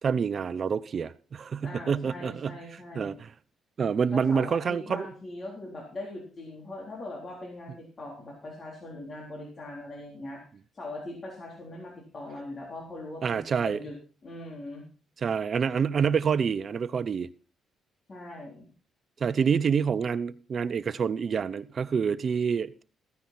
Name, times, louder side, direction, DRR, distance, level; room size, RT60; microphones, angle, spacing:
voice 1, 0.0-2.6 2.9-3.3 3.8-5.1 13.2-13.8 15.2-17.3 19.2-22.8, right 6 dB, 50° right, 0.7 m, -27 dB
voice 2, 1.6-3.2 4.1-10.4 10.7-14.0 14.2-14.9 18.1-18.7, left 2 dB, 40° left, 3.7 m, -41 dB
15.5 x 9.6 x 4.3 m
cardioid pair, 90°, 0 cm